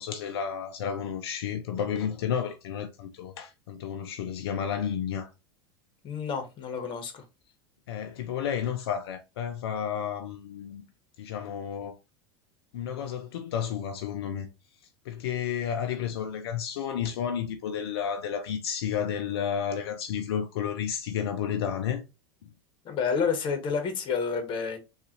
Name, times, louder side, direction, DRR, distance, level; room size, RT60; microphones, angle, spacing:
voice 1, 0.0-5.3 7.9-10.8 11.2-12.0 12.7-14.5 15.0-22.0, left 8 dB, 75° left, 0.5 m, -31 dB
voice 2, 6.0-7.2 22.8-24.8, left 6 dB, 40° left, 1.1 m, -29 dB
3.8 x 2.4 x 2.8 m
hypercardioid pair, 95°, 13 cm